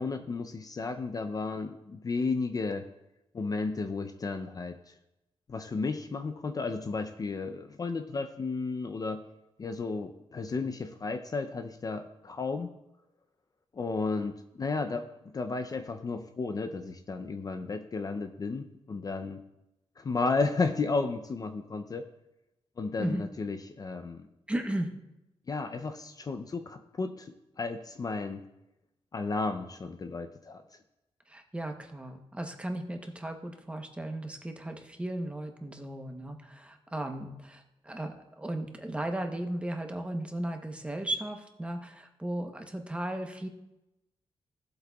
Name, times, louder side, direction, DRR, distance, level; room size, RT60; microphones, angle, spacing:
voice 1, 0.0-2.9 3.3-4.9 5.5-9.2 9.6-12.7 13.7-19.4 20.0-22.0 22.8-24.2 25.5-28.4 29.1-30.6, left 4 dB, 35° left, 7 dB, 0.5 m, -33 dB
voice 2, 24.5-24.9 31.3-43.5, right 1 dB, 10° right, 4 dB, 0.8 m, -36 dB
16.5 x 8.0 x 2.3 m, 0.92 s
wide cardioid pair, 145°, 11 cm